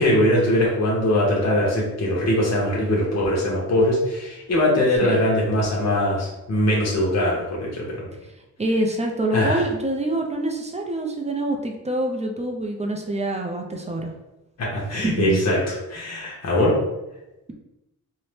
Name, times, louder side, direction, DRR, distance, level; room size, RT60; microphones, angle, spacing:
voice 1, 0.0-8.0 9.3-9.6 14.6-16.8, left 1 dB, 55° left, -4 dB, 0.9 m, -21 dB
voice 2, 8.6-14.1 15.0-15.4, right 1 dB, 20° right, 2 dB, 0.4 m, -26 dB
2.7 x 2.0 x 3.1 m, 0.99 s
wide cardioid pair, 100°, 31 cm